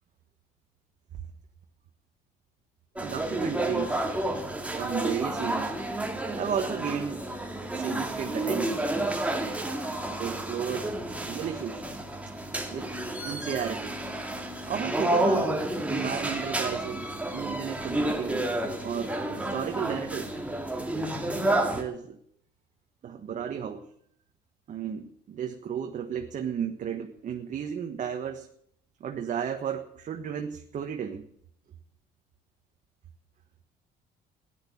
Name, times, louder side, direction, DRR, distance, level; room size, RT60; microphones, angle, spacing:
sound 1, 3.0-21.8, right 1 dB, 10° right, 2.3 m, -30 dB
voice 1, 3.0-4.1 4.7-5.7 6.4-7.3 7.7-8.8 10.1-10.9 11.2-11.8 12.7-12.9 13.2-14.0 14.7-15.6 15.8-18.5 18.8-20.3 21.6-22.2 23.0-23.8 24.7-28.5 29.0-31.3, right 8 dB, 50° right, 4 dB, 1.4 m, -33 dB
14.5 x 10.5 x 8.5 m, 0.68 s
cardioid pair, 110°, 17 cm